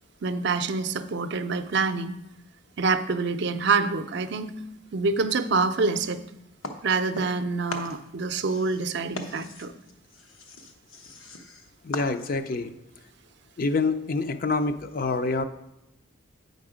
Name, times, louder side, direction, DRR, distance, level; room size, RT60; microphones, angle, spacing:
voice 1, 0.2-2.1 2.8-4.5 4.9-6.2 6.8-9.7, right 4 dB, 55° right, 10 dB, 0.5 m, -26 dB
sound 1, 6.6-7.4 7.7-12.6, left 2 dB, 85° left, 1.0 m, -40 dB
voice 2, 11.8-12.7 13.6-15.4, left 3 dB, 45° left, 10 dB, 0.4 m, -26 dB
8.7 x 5.3 x 4.9 m, 0.90 s
head